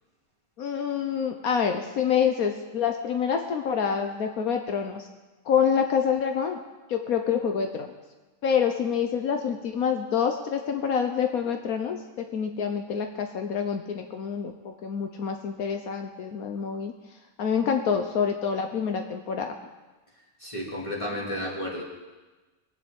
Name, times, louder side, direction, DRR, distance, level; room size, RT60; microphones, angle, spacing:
voice 1, 0.6-5.1 5.4-6.6 6.9-7.9 8.4-16.9 17.4-19.6, left 7 dB, 75° left, 5 dB, 1.4 m, -27 dB
voice 2, 20.4-21.8, left 1 dB, 20° left, -3 dB, 3.4 m, -32 dB
21.5 x 7.6 x 8.7 m, 1.2 s
omnidirectional pair, 1.5 m